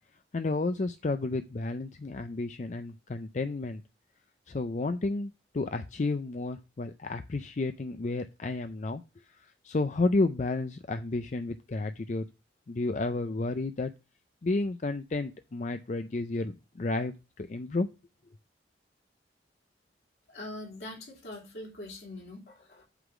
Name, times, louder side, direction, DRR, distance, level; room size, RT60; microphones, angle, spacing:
voice 1, 0.3-3.8 4.5-9.0 9.3-12.3 12.7-13.9 14.4-17.9, left 2 dB, 45° left, 9 dB, 0.5 m, -31 dB
voice 2, 20.3-22.8, left 1 dB, 65° left, -2 dB, 2.8 m, -43 dB
8.1 x 3.8 x 6.0 m, 0.27 s
head